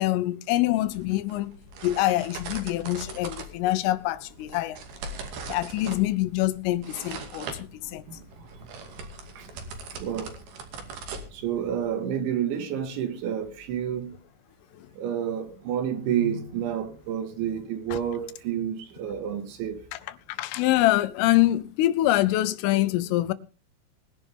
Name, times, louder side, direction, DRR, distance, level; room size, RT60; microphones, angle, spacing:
voice 1, 0.0-1.6 1.8-4.8 5.5-8.0 14.8-14.9 17.9-18.0 20.3-23.3, left 16 dB, 90° left, 3.6 m, -25 dB
sound 1, 0.7-11.8, right 3 dB, 55° right, 3.9 m, -41 dB
voice 2, 7.8-9.0 9.4-9.5 9.9-10.4 11.3-14.1 14.9-19.8, right 9 dB, 70° right, 4.2 m, -30 dB
21.5 x 11.0 x 3.6 m
omnidirectional pair, 5.7 m